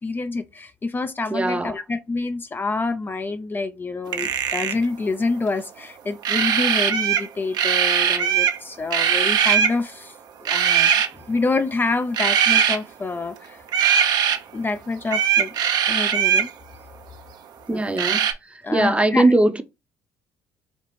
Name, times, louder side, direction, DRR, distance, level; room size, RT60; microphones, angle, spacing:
voice 1, 0.0-10.2 10.4-10.9 11.3-13.6 14.5-15.6 15.9-16.5 17.7-17.8 18.6-19.3, left 3 dB, 25° left, 0.4 m, -27 dB
voice 2, 1.3-1.7 17.7-18.2 18.7-19.6, right 2 dB, 15° right, 0.6 m, -19 dB
sound 1, 4.1-4.8 6.2-7.3 7.5-8.6 8.9-9.8 10.4-11.1 12.1-12.8 13.7-14.4 15.1-16.5 18.0-18.3, right 8 dB, 65° right, 0.6 m, -20 dB
4.1 x 2.4 x 3.1 m
hypercardioid pair, 60°, 8 cm